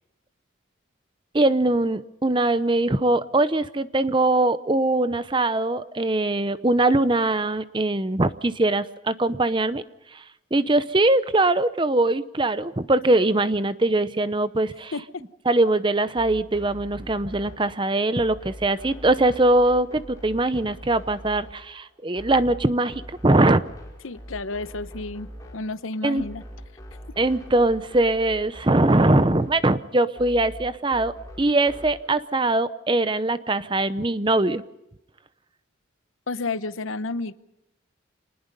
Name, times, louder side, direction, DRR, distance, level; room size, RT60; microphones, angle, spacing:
voice 1, 1.3-9.8 10.1-10.2 10.5-14.9 15.5-23.6 26.0-26.2 27.2-31.1 31.4-34.6, right 2 dB, 25° right, 13 dB, 0.7 m, -22 dB
sound 1, 16.1-32.1, equal, 15° left, 4.7 m, -43 dB
voice 2, 24.0-25.3 25.5-26.4 36.3-37.3, left 3 dB, 80° left, 14 dB, 0.9 m, -31 dB
26.5 x 20.0 x 5.4 m, 0.91 s
head